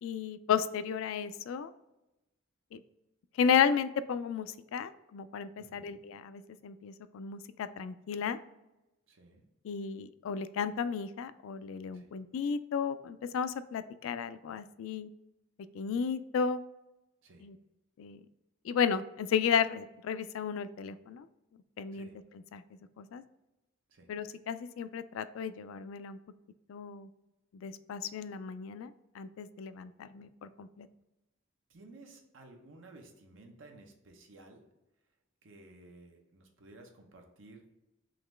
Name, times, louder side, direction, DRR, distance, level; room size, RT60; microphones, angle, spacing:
voice 1, 0.0-1.7 2.7-2.8 3.4-8.4 9.6-15.1 15.7-16.6 17.4-17.6 18.0-18.2 18.6-21.3 21.8-22.1 22.5-22.6 23.0-23.2 24.1-26.2 26.7-27.1 27.6-30.9, left 7 dB, 80° left, 13 dB, 0.3 m, -33 dB
voice 2, 5.6-6.0 9.1-9.4 11.9-12.1 17.2-17.5 21.9-22.2 23.9-24.1 31.7-34.6 35.4-37.7, right 2 dB, 75° right, 3 dB, 0.8 m, -55 dB
3.9 x 3.0 x 3.2 m, 0.96 s
head